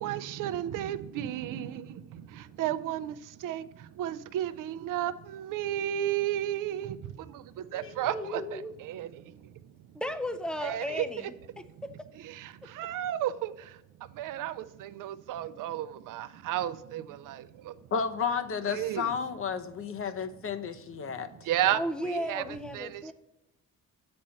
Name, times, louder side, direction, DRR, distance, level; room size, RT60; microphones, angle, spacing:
voice 1, 0.0-1.9 2.6-3.1 3.4-3.6 4.0-7.0 7.7-8.6 8.9-9.1 10.6-11.0 12.8-13.5 14.2-14.5 14.8-17.4 18.7-19.1 21.5-22.4 22.7-22.9, right 12 dB, 65° right, 0.5 m, -32 dB
voice 2, 7.6-8.7 9.9-11.3 11.8-11.9 21.7-23.1, equal, 5° left, 0.4 m, -35 dB
voice 3, 17.9-21.3, left 6 dB, 40° left, 0.7 m, -32 dB
7.5 x 4.4 x 5.6 m
cardioid pair, 120°, 34 cm